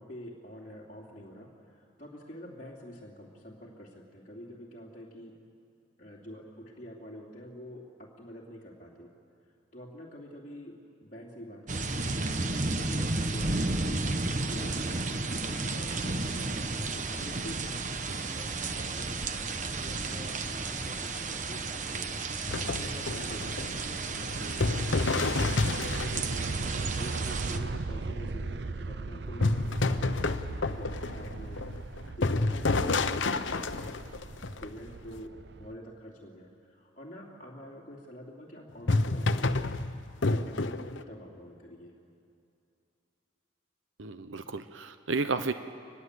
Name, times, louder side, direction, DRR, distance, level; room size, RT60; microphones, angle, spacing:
voice 1, 0.0-5.4 6.0-9.1 9.7-33.9 34.6-39.7 40.0-41.9, equal, 40° left, -4 dB, 3.1 m, -47 dB
sound 1, 11.7-27.6, right 3 dB, 40° right, 1.1 m, -33 dB
sound 2, 20.2-35.8, right 3 dB, 60° right, 0.6 m, -39 dB
sound 3, 22.5-26.5 29.4-35.1 38.8-41.0, left 3 dB, 80° left, 0.9 m, -29 dB
voice 2, 44.0-45.5, right 4 dB, 85° right, 10 dB, 0.9 m, -32 dB
24.0 x 20.5 x 8.3 m, 2.6 s
head